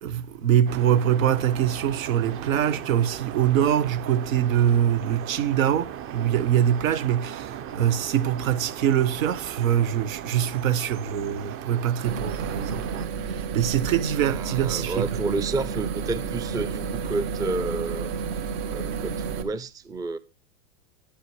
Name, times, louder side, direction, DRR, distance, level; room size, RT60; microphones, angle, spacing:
voice 1, 0.0-15.3, right 10 dB, 80° right, 1.4 m, -24 dB
sound 1, 0.7-13.1, right 9 dB, 30° right, 0.9 m, -37 dB
sound 2, 12.0-19.4, right 6 dB, 55° right, 2.2 m, -31 dB
voice 2, 14.2-18.1 18.7-20.2, right 3 dB, 10° right, 0.5 m, -30 dB
10.0 x 9.1 x 4.7 m
hypercardioid pair, 120°, 41 cm